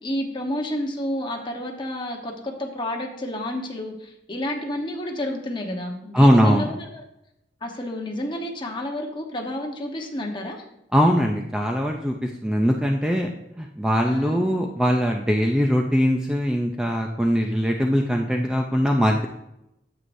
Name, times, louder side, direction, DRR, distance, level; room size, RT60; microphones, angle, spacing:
voice 1, 0.0-6.8 7.6-10.6 14.0-14.4, left 1 dB, 25° left, 1 dB, 1.1 m, -30 dB
voice 2, 6.1-6.7 10.9-13.3 13.6-19.3, equal, 5° right, 1 dB, 0.5 m, -21 dB
9.5 x 7.7 x 2.6 m, 0.83 s
head